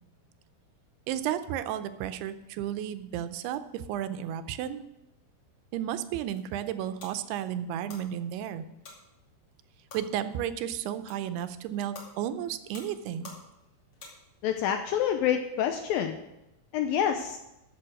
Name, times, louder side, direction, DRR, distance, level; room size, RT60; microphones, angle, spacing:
voice 1, 1.1-4.9 5.7-8.6 9.9-13.3, right 10 dB, 80° right, 11 dB, 2.6 m, -33 dB
sound 1, 6.1-14.6, left 3 dB, 40° left, 3.1 m, -52 dB
voice 2, 14.4-16.2 16.7-17.4, left 9 dB, 80° left, 6 dB, 2.1 m, -27 dB
13.0 x 6.5 x 6.3 m, 0.89 s
omnidirectional pair, 4.7 m